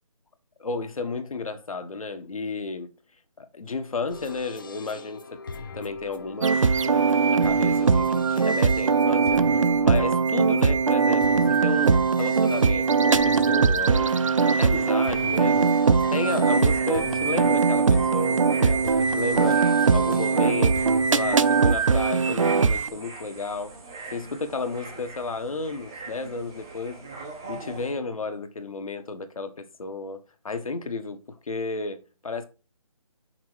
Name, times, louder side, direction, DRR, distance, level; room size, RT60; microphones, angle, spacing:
voice 1, 0.6-2.9 3.4-5.4 5.7-14.1 14.5-15.8 16.1-19.6 19.9-23.7 24.1-27.0 27.5-32.5, left 3 dB, 65° left, 1.3 m, -32 dB
sound 1, 4.1-21.8, left 4 dB, 35° left, 0.6 m, -40 dB
sound 2, 6.4-22.9, right 5 dB, 60° right, 0.6 m, -21 dB
sound 3, 16.2-27.9, right 3 dB, 5° right, 0.4 m, -41 dB
5.9 x 5.3 x 4.7 m
figure-of-eight pair, 165°, 19 cm